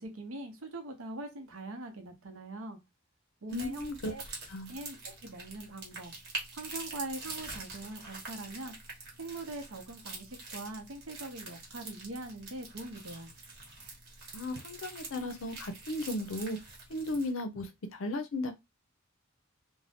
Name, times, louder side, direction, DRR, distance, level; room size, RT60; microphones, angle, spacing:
voice 1, 0.0-2.8 3.4-4.2 4.7-6.1 6.5-8.7 9.2-13.3, right 2 dB, 75° right, 0.8 m, -42 dB
voice 2, 3.5-4.1 4.5-4.8 14.3-16.6 16.9-18.5, left 1 dB, 65° left, 0.5 m, -35 dB
sound 1, 3.5-17.3, right 3 dB, 55° right, 1.1 m, -45 dB
2.5 x 2.1 x 3.4 m
head